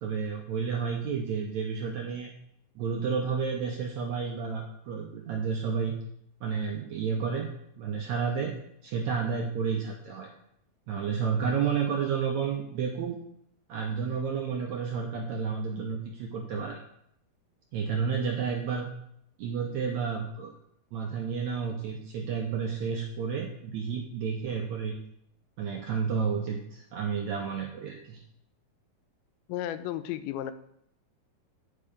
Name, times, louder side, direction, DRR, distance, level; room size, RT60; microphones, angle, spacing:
voice 1, 0.0-2.3 2.7-5.9 6.4-7.5 7.8-8.5 8.8-10.3 10.9-13.2 13.7-16.8 17.7-18.9 19.4-20.5 20.9-24.9 25.6-28.2, right 6 dB, 80° right, 1 dB, 1.6 m, -31 dB
voice 2, 29.5-30.5, left 12 dB, 90° left, 12 dB, 2.4 m, -33 dB
8.8 x 5.4 x 5.0 m, 0.72 s
omnidirectional pair, 4.1 m